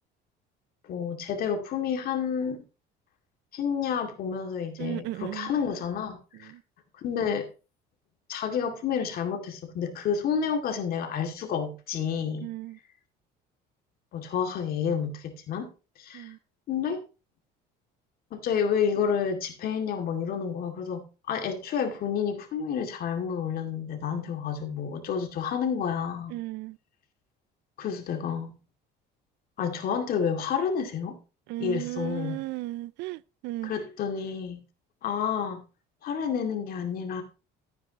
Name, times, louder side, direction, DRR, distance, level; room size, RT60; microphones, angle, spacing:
voice 1, 0.8-2.6 3.5-6.5 7.0-7.5 8.3-12.5 14.1-15.7 16.0-16.3 16.7-17.0 18.3-26.3 27.8-28.6 29.6-31.2 31.6-32.4 33.6-34.6 35.0-35.6 36.0-37.2, left 7 dB, 55° left, 2.2 m, -30 dB
voice 2, 4.8-5.5 6.4-6.6 12.4-12.8 16.1-16.4 26.3-26.8 31.5-33.7, right 18 dB, 70° right, 0.4 m, -35 dB
13.0 x 9.4 x 2.9 m
cardioid pair, 130°, 19 cm